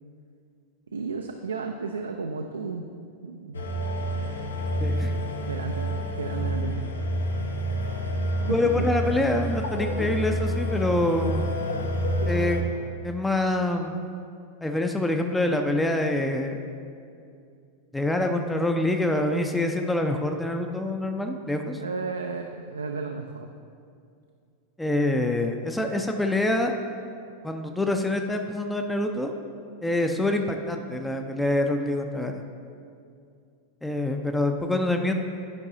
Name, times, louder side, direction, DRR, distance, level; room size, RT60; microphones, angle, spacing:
voice 1, 0.9-2.9 3.2-3.8 5.5-6.9 8.5-8.9 21.8-23.5, right 4 dB, 75° right, 4 dB, 0.3 m, -33 dB
sound 1, 3.5-12.6, equal, 70° left, 0.7 m, -28 dB
voice 2, 4.8-5.1 8.5-11.5 12.3-12.6 13.0-14.1 14.6-16.6 17.9-21.8 24.8-26.7 27.4-29.3 29.8-32.4 33.8-35.1, left 1 dB, 5° left, 4 dB, 0.4 m, -26 dB
10.5 x 5.3 x 2.6 m, 2.4 s
figure-of-eight pair, 90°, 0 cm